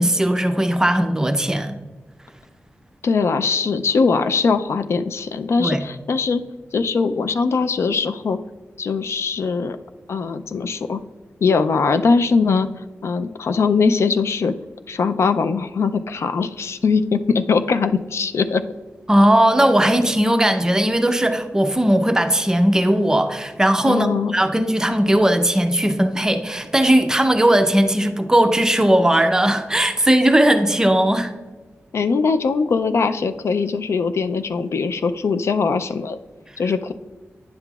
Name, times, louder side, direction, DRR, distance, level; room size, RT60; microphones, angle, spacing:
voice 1, 0.0-1.7 5.6-5.8 19.1-31.3, right 1 dB, 15° right, 7 dB, 0.5 m, -18 dB
voice 2, 3.0-6.4 6.7-8.4 8.8-9.8 10.1-11.0 11.4-12.7 13.0-14.5 14.9-18.6 23.8-24.3 31.9-36.2 36.6-36.9, left 5 dB, 70° left, 10 dB, 0.3 m, -21 dB
9.6 x 5.8 x 2.3 m, 1.3 s
wide cardioid pair, 165°, 5 cm